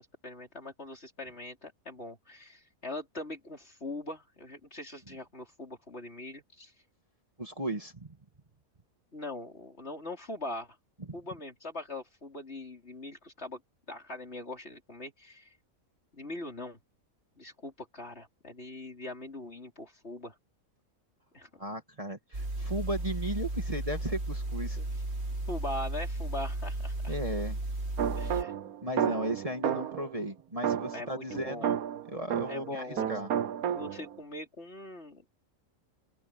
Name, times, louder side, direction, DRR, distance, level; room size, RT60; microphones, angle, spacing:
voice 1, 0.0-6.7 9.1-10.8 11.1-13.6 13.9-15.5 16.1-16.8 17.4-20.4 21.3-21.5 24.7-24.8 25.5-27.1 28.2-28.5 30.9-31.7 32.5-33.1 33.7-35.3, left 2 dB, 45° left, 4.9 m, -41 dB
voice 2, 7.4-8.2 11.1-11.2 21.6-24.8 27.1-27.6 28.3-28.4 28.8-31.8 32.1-33.3, right 1 dB, 25° right, 2.3 m, -36 dB
sound 1, 22.3-28.4, right 2 dB, 45° right, 2.6 m, -34 dB
sound 2, 28.0-30.1 30.6-32.7 33.0-34.2, right 9 dB, 85° right, 1.4 m, -32 dB
open air
omnidirectional pair, 1.5 m